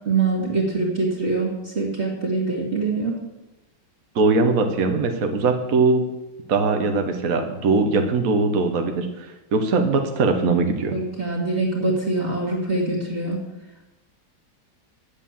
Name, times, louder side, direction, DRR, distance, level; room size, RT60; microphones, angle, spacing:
voice 1, 0.1-3.2 10.9-13.4, right 3 dB, 35° right, -6 dB, 2.5 m, -24 dB
voice 2, 4.1-6.0 6.5-11.0, right 3 dB, 50° right, 5 dB, 1.5 m, -21 dB
10.5 x 8.5 x 7.5 m, 1.0 s
omnidirectional pair, 2.0 m